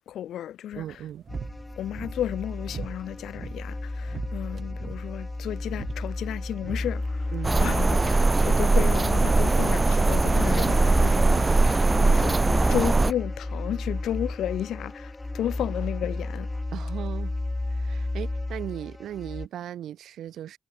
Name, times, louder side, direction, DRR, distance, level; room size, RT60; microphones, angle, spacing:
voice 1, 0.1-0.8 1.8-7.3 7.6-11.2 12.0-12.4 12.7-16.5, left 11 dB, 90° left, 0.9 m, -32 dB
sound 1, 0.7-11.3, right 6 dB, 50° right, 0.9 m, -43 dB
voice 2, 0.8-1.2 7.3-7.6 11.3-11.6 16.7-17.4 17.7-20.6, right 11 dB, 85° right, 3.1 m, -37 dB
sound 2, 1.3-19.5, left 2 dB, 15° left, 1.1 m, -32 dB
sound 3, 7.4-13.1, right 3 dB, 25° right, 0.6 m, -21 dB
cardioid pair, 95°, 0 cm